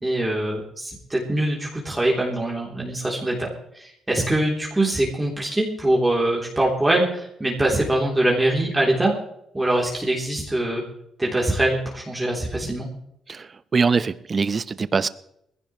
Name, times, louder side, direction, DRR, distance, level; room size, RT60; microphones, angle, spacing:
voice 1, 0.0-3.5 3.7-9.1 9.5-10.8 11.2-12.9, right 1 dB, 15° right, -3 dB, 3.4 m, -23 dB
voice 2, 13.3-15.1, right 5 dB, 35° right, 15 dB, 0.8 m, -23 dB
20.5 x 16.0 x 3.2 m, 0.74 s
cardioid pair, 90°, 0 cm